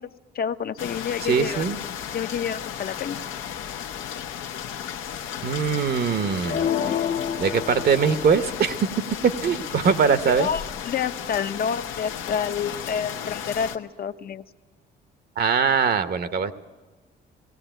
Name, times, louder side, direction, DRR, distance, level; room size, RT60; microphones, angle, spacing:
voice 1, 0.0-1.6 2.1-3.2 10.3-14.4, left 7 dB, 50° left, 11 dB, 0.8 m, -29 dB
sound 1, 0.8-13.8, left 9 dB, 90° left, 1.0 m, -34 dB
voice 2, 1.2-1.8 5.4-6.7 7.4-8.9 9.2-10.5 15.4-16.5, right 6 dB, 55° right, 11 dB, 0.9 m, -22 dB
sound 2, 6.4-8.5, left 9 dB, 65° left, 1.2 m, -28 dB
17.5 x 17.5 x 9.1 m, 1.2 s
cardioid pair, 90°, 20 cm